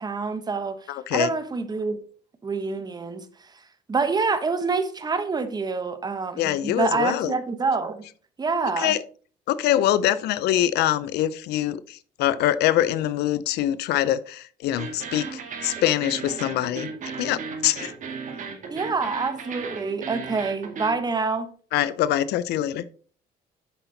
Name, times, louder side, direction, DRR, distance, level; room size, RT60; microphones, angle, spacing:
voice 1, 0.0-2.0 2.4-3.3 3.9-8.0 8.4-8.9 18.7-21.5, right 4 dB, 25° right, 1.1 m, -26 dB
voice 2, 0.9-1.3 6.4-7.3 8.8-9.0 9.5-16.9 17.2-17.9 21.7-22.8, left 12 dB, 75° left, 0.5 m, -24 dB
sound 1, 14.8-21.0, right 5 dB, 50° right, 2.0 m, -35 dB
7.9 x 5.9 x 4.0 m
cardioid pair, 110°, 17 cm